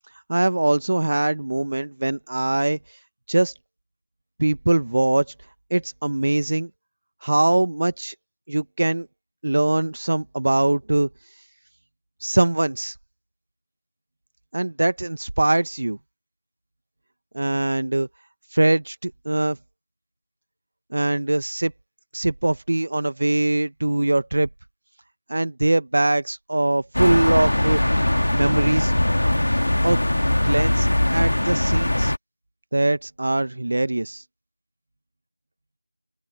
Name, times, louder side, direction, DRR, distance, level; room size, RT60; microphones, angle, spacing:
voice 1, 0.3-3.0 3.3-3.5 4.4-5.2 5.7-6.7 7.2-8.1 8.5-9.1 9.4-11.1 12.2-12.9 14.5-16.0 17.3-18.1 18.5-19.6 20.9-21.7 22.1-24.5 25.3-27.8 28.3-28.9 29.8-30.0 30.4-32.1 32.7-34.2, right 2 dB, 35° right, 1.1 m, -22 dB
sound 1, 26.9-32.2, left 1 dB, 85° left, 2.0 m, -21 dB
open air
figure-of-eight pair, 180°, 0 cm